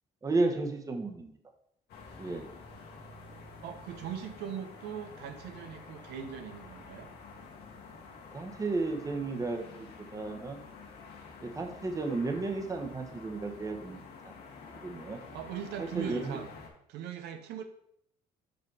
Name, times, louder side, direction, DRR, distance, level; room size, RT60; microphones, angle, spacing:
voice 1, 0.2-1.4 2.2-2.5 8.3-10.6 11.4-14.4 14.8-15.2 15.9-16.4, right 3 dB, 20° right, 4 dB, 1.0 m, -33 dB
sound 1, 1.9-16.7, left 4 dB, 75° left, 1.6 m, -49 dB
voice 2, 3.6-7.1 15.3-16.5 16.9-17.6, right 8 dB, 85° right, 7 dB, 0.8 m, -40 dB
5.3 x 5.1 x 4.7 m, 0.71 s
cardioid pair, 110°, 17 cm